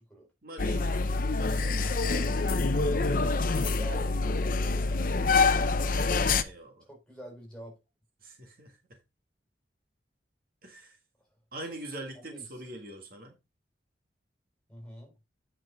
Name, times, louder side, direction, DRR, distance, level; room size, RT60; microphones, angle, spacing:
voice 1, 0.4-1.0 6.4-6.9 8.2-9.0 10.6-11.0 11.5-13.4, right 1 dB, 55° right, 1.8 m, -43 dB
sound 1, 0.6-6.4, left 3 dB, 50° left, 0.6 m, -26 dB
voice 2, 3.6-4.9 6.9-7.8 12.2-12.4 14.7-15.1, right 1 dB, 5° left, 4.2 m, -46 dB
9.1 x 5.4 x 3.9 m
head